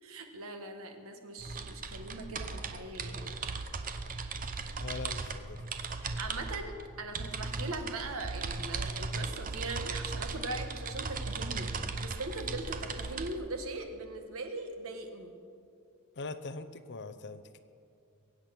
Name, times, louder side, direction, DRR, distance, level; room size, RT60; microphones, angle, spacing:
voice 1, 0.0-3.3 5.9-15.3, right 2 dB, 70° right, 5 dB, 1.6 m, -40 dB
sound 1, 1.4-13.3, right 4 dB, 40° right, 0.8 m, -37 dB
voice 2, 4.8-5.6 16.2-17.6, left 3 dB, 55° left, 10 dB, 0.8 m, -41 dB
22.5 x 8.6 x 6.1 m, 2.4 s
head